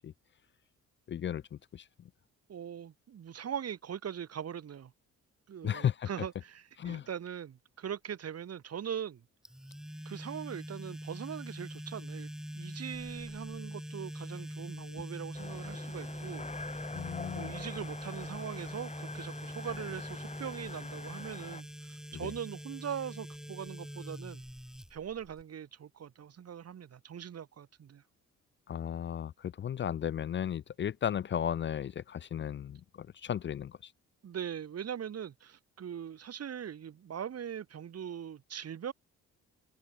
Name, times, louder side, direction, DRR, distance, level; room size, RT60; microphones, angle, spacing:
voice 1, 1.1-1.4 1.7-1.8 5.6-6.1 6.8-7.1 16.9-17.5 22.2-22.3 28.7-33.9, left 9 dB, 40° left, 0.5 m, -34 dB
voice 2, 2.5-4.9 5.5-9.2 10.0-16.5 17.3-24.4 24.9-28.0 34.2-38.9, right 8 dB, 55° right, 3.4 m, -41 dB
sound 1, 9.5-25.4, equal, ahead, 2.6 m, -43 dB
sound 2, 15.3-21.6, left 4 dB, 25° left, 1.4 m, -45 dB
cardioid pair, 90°, 30 cm